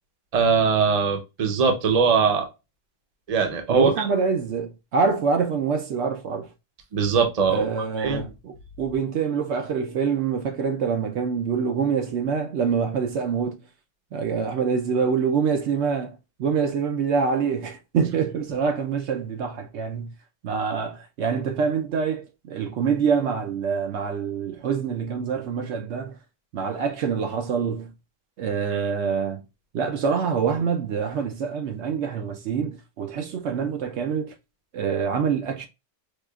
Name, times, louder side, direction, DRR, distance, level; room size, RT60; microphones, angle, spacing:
voice 1, 0.3-2.5 3.3-3.9 6.9-7.7 8.0-8.2 28.7-28.8, right 5 dB, 40° right, 0.7 m, -21 dB
voice 2, 3.7-6.5 7.5-13.6 14.1-20.1 20.4-26.2 26.5-27.9 28.4-29.4 29.7-34.4 34.7-35.7, right 6 dB, 70° right, 0.8 m, -25 dB
4.7 x 2.4 x 2.3 m
omnidirectional pair, 1.3 m